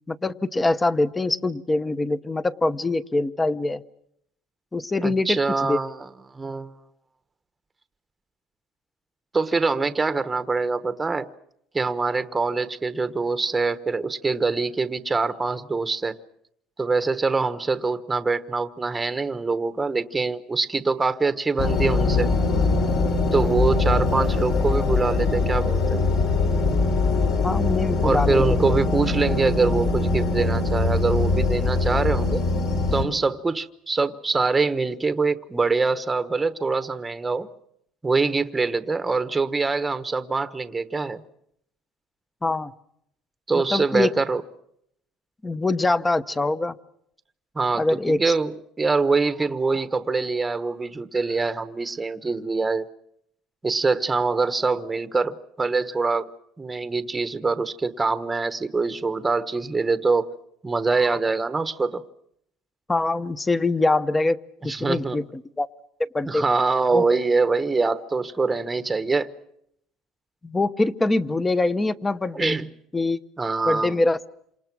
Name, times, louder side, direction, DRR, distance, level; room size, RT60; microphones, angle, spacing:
voice 1, 0.1-3.8 4.7-5.8 27.4-28.6 42.4-42.7 43.7-44.1 45.4-46.7 47.8-48.3 62.9-64.4 64.6-65.2 65.6-65.7 66.1-66.4 66.9-67.0 70.4-72.6 72.9-73.2 73.7-74.2, left 2 dB, 15° left, 0.9 m, -23 dB
voice 2, 5.0-6.0 6.3-6.7 9.3-11.3 11.7-16.2 16.8-22.3 23.3-26.1 28.0-32.4 32.9-37.5 38.0-41.2 43.5-44.4 47.5-52.9 53.6-56.3 56.6-60.3 60.6-62.0 64.6-65.2 66.3-69.3 72.3-72.7 73.4-74.0, right 4 dB, 15° right, 1.1 m, -24 dB
sound 1, 21.6-33.0, left 3 dB, 60° left, 4.8 m, -22 dB
28.5 x 27.0 x 6.1 m
cardioid pair, 135°, 0 cm